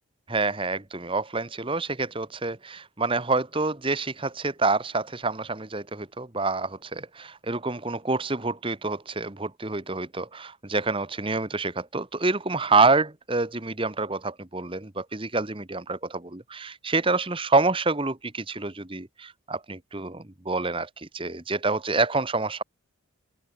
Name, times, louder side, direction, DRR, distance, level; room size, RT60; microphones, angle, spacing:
voice 1, 0.3-22.6, right 3 dB, 25° right, 1.2 m, -27 dB
open air
head